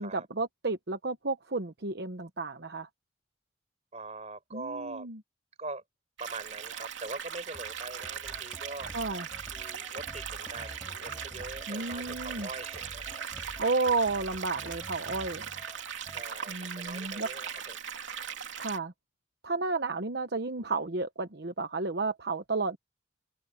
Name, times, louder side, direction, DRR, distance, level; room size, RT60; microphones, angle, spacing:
voice 1, 0.0-2.9 4.5-5.2 8.9-9.3 11.7-12.5 13.6-15.5 16.5-17.3 18.6-18.9 19.4-22.8, right 3 dB, 55° right, 1.0 m, -32 dB
voice 2, 3.9-5.1 5.6-5.8 6.2-8.9 9.5-13.3 16.1-17.8, right 3 dB, 35° right, 5.4 m, -42 dB
sound 1, 6.2-18.8, right 8 dB, 75° right, 2.9 m, -39 dB
sound 2, 7.5-15.3, equal, 10° left, 4.4 m, -55 dB
sound 3, 8.2-16.2, equal, 10° right, 7.7 m, -49 dB
head